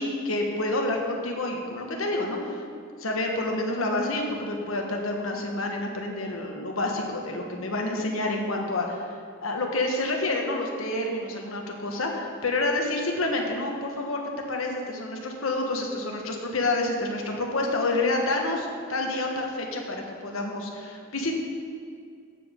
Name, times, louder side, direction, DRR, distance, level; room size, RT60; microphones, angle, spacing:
voice 1, 0.0-2.6 3.0-14.2 14.5-21.3, left 2 dB, 90° left, 1 dB, 1.5 m, -28 dB
14.5 x 7.7 x 3.8 m, 2.3 s
head